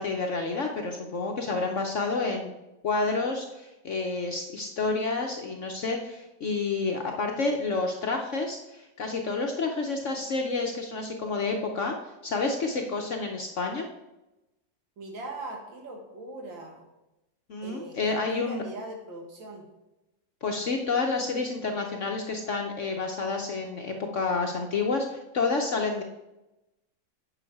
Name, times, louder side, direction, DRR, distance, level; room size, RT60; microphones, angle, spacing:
voice 1, 0.0-2.5 2.8-12.0 12.2-13.9 17.5-18.6 20.4-26.0, left 3 dB, 60° left, 2 dB, 0.8 m, -29 dB
voice 2, 15.0-16.8 17.6-19.6, right 2 dB, 85° right, 1 dB, 2.4 m, -40 dB
9.0 x 6.0 x 4.7 m, 0.98 s
omnidirectional pair, 2.0 m